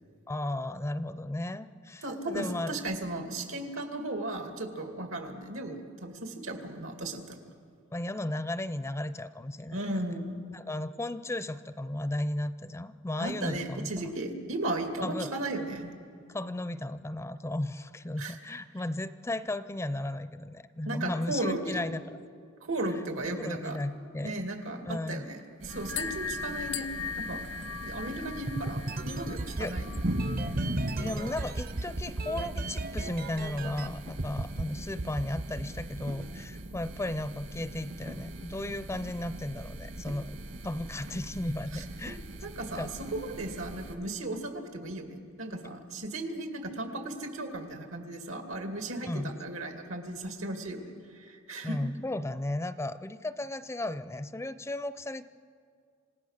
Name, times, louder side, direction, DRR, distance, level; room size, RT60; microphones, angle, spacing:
voice 1, 0.3-2.8 7.9-9.8 10.5-13.9 15.0-15.3 16.3-22.2 23.3-24.4 24.8-25.3 29.6-29.8 31.0-40.4 40.6-42.2 42.8-42.9 49.0-49.3 51.6-55.2, left 1 dB, 15° left, 13 dB, 0.4 m, -35 dB
voice 2, 2.0-7.4 9.7-10.4 13.2-15.9 18.2-18.4 20.9-21.8 22.6-23.8 24.2-26.9 27.1-27.4 27.8-30.0 41.7-41.8 42.4-50.8 51.1-51.8, right 2 dB, 85° right, 5 dB, 2.3 m, -35 dB
sound 1, 25.6-44.0, right 1 dB, 65° right, 1.8 m, -40 dB
sound 2, 25.7-30.7, left 6 dB, 65° left, 0.7 m, -39 dB
sound 3, 28.5-33.9 34.2-34.6 35.0-36.4, right 2 dB, 45° right, 0.6 m, -35 dB
27.5 x 17.0 x 6.5 m, 2.2 s
head